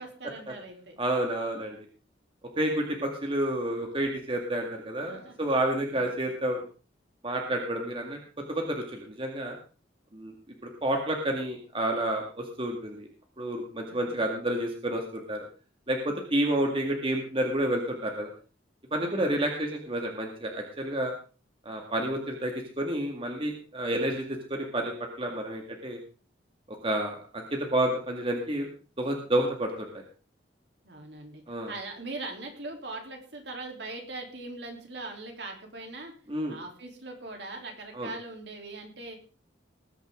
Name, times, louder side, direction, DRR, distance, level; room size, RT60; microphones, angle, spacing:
voice 1, 0.0-1.0 2.5-3.0 5.1-5.5 5.9-6.1 13.9-14.2 19.0-19.3 30.8-36.1 36.5-39.2, right 2 dB, 65° right, 2 dB, 3.5 m, -41 dB
voice 2, 1.0-1.8 2.6-6.6 7.2-8.2 8.5-9.6 10.1-10.3 10.6-13.1 13.4-15.4 15.9-18.3 18.9-21.1 21.7-26.0 26.7-28.7 29.0-30.0 31.5-31.7 36.3-36.6 37.9-38.1, right 1 dB, 30° right, 2 dB, 2.1 m, -30 dB
20.0 x 9.9 x 3.8 m, 0.36 s
head